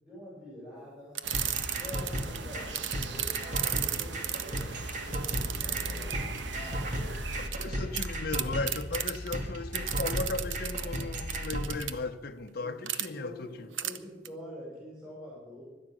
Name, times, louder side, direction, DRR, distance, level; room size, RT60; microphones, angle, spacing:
voice 1, 0.0-6.7 12.6-12.8 13.1-15.6, left 1 dB, 5° right, 6.7 m, -46 dB
sound 1, 1.1-2.4 2.7-6.4 7.5-7.7 8.0-8.1 8.3-9.4 9.7-11.9 12.9-13.1 13.8-14.0 14.2-14.3, right 11 dB, 85° right, 0.8 m, -33 dB
sound 2, 1.2-7.5, right 4 dB, 70° right, 1.2 m, -41 dB
sound 3, 1.3-11.8, equal, 40° right, 2.2 m, -35 dB
voice 2, 7.6-13.7, left 3 dB, 55° left, 0.7 m, -36 dB
17.0 x 12.5 x 6.2 m
head